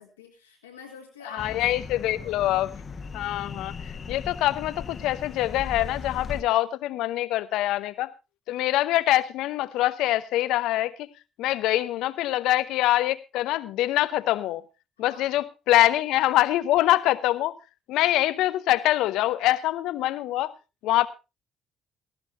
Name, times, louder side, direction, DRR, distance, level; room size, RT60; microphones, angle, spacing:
voice 1, 0.0-2.4 15.0-15.2 15.7-15.8, left 5 dB, 85° left, 1.8 m, -47 dB
voice 2, 1.3-2.7 3.1-8.1 8.5-11.1 11.4-14.6 15.0-17.5 17.9-20.5 20.8-21.1, left 15 dB, 70° left, 0.8 m, -24 dB
sound 1, 1.4-6.4, left 5 dB, 40° left, 1.3 m, -38 dB
18.0 x 14.5 x 2.7 m
hypercardioid pair, 45°, 0 cm